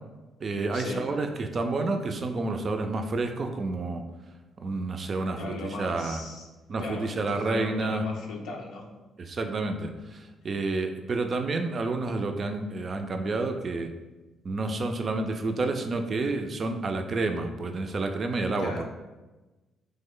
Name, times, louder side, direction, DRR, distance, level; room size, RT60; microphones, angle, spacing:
voice 1, 0.4-4.0 4.6-6.2 6.7-8.0 9.2-13.9 14.4-18.8, right 3 dB, 45° right, 5 dB, 0.3 m, -29 dB
voice 2, 5.4-6.5 6.8-8.9 18.6-18.8, left 3 dB, 85° left, 0 dB, 0.5 m, -37 dB
3.2 x 2.1 x 3.7 m, 1.1 s
cardioid pair, 90°, 0 cm